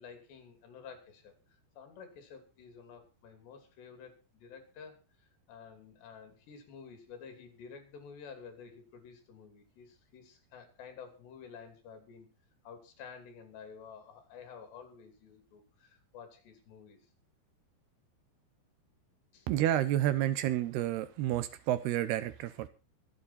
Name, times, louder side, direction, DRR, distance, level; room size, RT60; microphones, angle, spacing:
voice 1, 0.0-1.4 1.8-12.3 12.6-17.0 19.3-19.5, left 6 dB, 75° left, 6 dB, 5.0 m, -51 dB
voice 2, 19.5-22.7, right 13 dB, 75° right, 13 dB, 2.8 m, -30 dB
24.0 x 8.1 x 4.3 m, 0.30 s
omnidirectional pair, 5.0 m